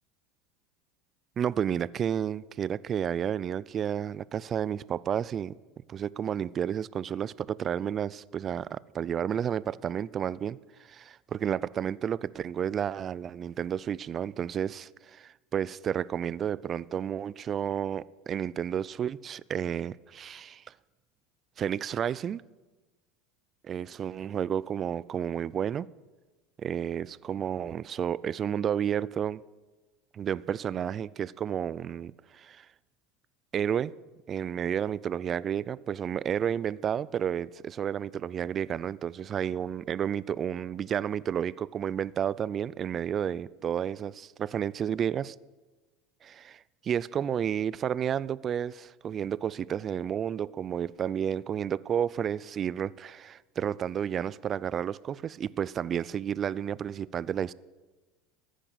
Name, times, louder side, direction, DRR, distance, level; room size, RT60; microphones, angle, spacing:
voice 1, 1.4-5.6 5.9-20.6 21.6-22.4 23.6-25.9 26.6-29.4 30.1-32.7 33.5-33.9 34.3-45.3 46.2-57.5, right 9 dB, 40° right, 0.5 m, -31 dB
15.0 x 10.0 x 8.1 m
hypercardioid pair, 80°, 0 cm